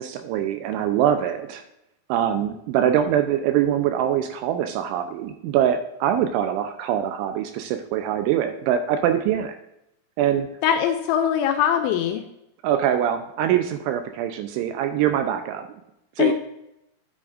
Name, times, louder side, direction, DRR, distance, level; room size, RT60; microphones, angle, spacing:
voice 1, 0.0-1.6 2.1-9.6 10.2-10.5 12.6-15.7 16.2-16.3, right 10 dB, 80° right, 7 dB, 2.9 m, -23 dB
voice 2, 10.6-12.3 16.2-16.3, left 9 dB, 80° left, 5 dB, 2.8 m, -21 dB
10.5 x 8.5 x 2.5 m, 0.83 s
omnidirectional pair, 5.8 m